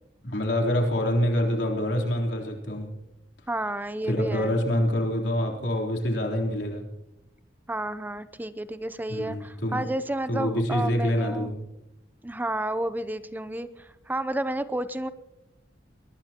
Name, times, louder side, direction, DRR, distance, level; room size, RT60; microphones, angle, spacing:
voice 1, 0.2-2.9 4.1-6.9 9.1-9.9 10.3-11.6, equal, 80° left, 0 dB, 3.7 m, -26 dB
voice 2, 3.5-4.6 7.7-11.6 12.2-15.1, right 1 dB, 10° right, 12 dB, 0.6 m, -31 dB
22.5 x 20.0 x 3.0 m, 0.91 s
head